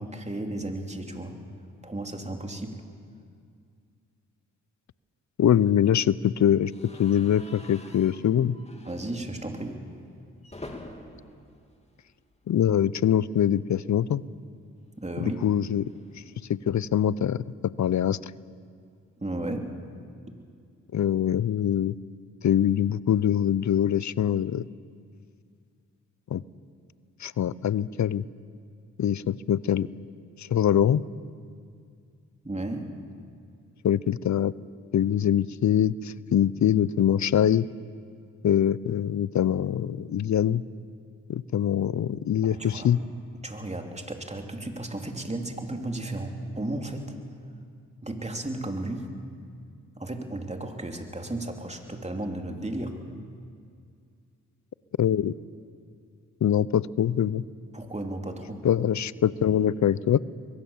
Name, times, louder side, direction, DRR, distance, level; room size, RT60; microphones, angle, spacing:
voice 1, 0.0-1.4 1.8-2.8 8.8-9.8 15.0-15.4 19.2-19.8 32.4-32.9 42.4-42.9 43.3-47.2 48.0-49.1 50.0-53.0 57.7-58.6, right 1 dB, 20° right, 3 dB, 3.1 m, -34 dB
voice 2, 5.4-6.7 7.0-8.5 12.5-14.2 15.2-15.9 16.5-17.4 17.8-18.3 20.9-21.9 22.4-24.6 26.3-26.4 27.2-28.2 29.0-29.9 30.4-31.0 33.8-34.5 34.9-37.7 38.4-40.6 41.3-43.0 55.0-55.3 56.4-57.4 58.6-60.2, left 10 dB, 60° left, 20 dB, 0.7 m, -23 dB
sound 1, 6.7-12.7 13.0-13.2 13.5-13.6 14.8-17.2, left 1 dB, 20° left, 2.9 m, -48 dB
22.0 x 18.5 x 7.3 m, 2.2 s
supercardioid pair, 45°, 32 cm